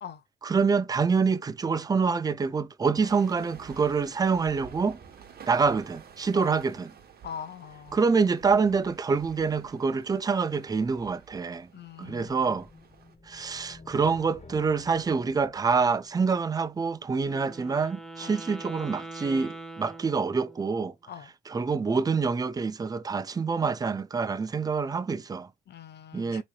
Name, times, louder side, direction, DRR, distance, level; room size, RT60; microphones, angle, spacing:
voice 1, 0.4-5.0 5.5-6.9 7.9-11.7 12.0-12.7 13.3-20.9 21.5-25.5 26.1-26.4, right 5 dB, 20° right, 0.5 m, -26 dB
sound 1, 3.0-13.1, right 7 dB, 50° right, 1.1 m, -51 dB
voice 2, 7.2-8.1 11.7-12.6 18.2-18.4 21.1-21.3 25.7-26.4, left 8 dB, 60° left, 0.9 m, -42 dB
sound 2, 12.0-16.9, left 3 dB, 35° left, 1.6 m, -50 dB
Wind instrument woodwind instrument, 17.1-20.8, right 2 dB, 5° left, 0.9 m, -43 dB
3.9 x 3.1 x 2.3 m
cardioid pair, 90°, 20 cm